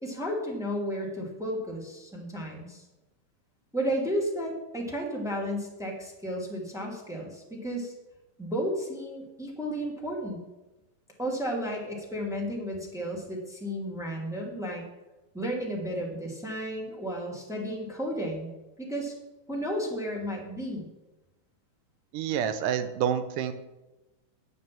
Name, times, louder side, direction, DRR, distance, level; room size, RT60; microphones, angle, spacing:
voice 1, 0.0-2.8 3.7-7.9 8.4-10.4 11.2-14.8 15.3-18.5 18.8-19.1 19.5-20.9, equal, ahead, -3 dB, 2.0 m, -33 dB
voice 2, 22.1-23.5, right 9 dB, 80° right, 10 dB, 2.4 m, -28 dB
9.9 x 7.5 x 7.5 m, 1.0 s
omnidirectional pair, 3.6 m